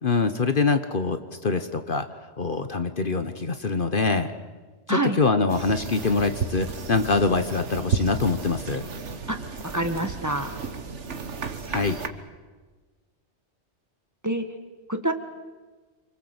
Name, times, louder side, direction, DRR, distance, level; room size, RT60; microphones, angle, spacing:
voice 1, 0.0-2.1 2.4-4.3 4.9-8.8 11.7-12.0, left 4 dB, 50° left, 9 dB, 1.3 m, -24 dB
sound 1, 5.5-12.1, right 5 dB, 85° right, 1.7 m, -33 dB
voice 2, 9.7-10.5 14.2-14.5 14.9-15.1, right 1 dB, 15° right, 6 dB, 1.7 m, -26 dB
28.5 x 25.0 x 8.0 m, 1.3 s
omnidirectional pair, 1.2 m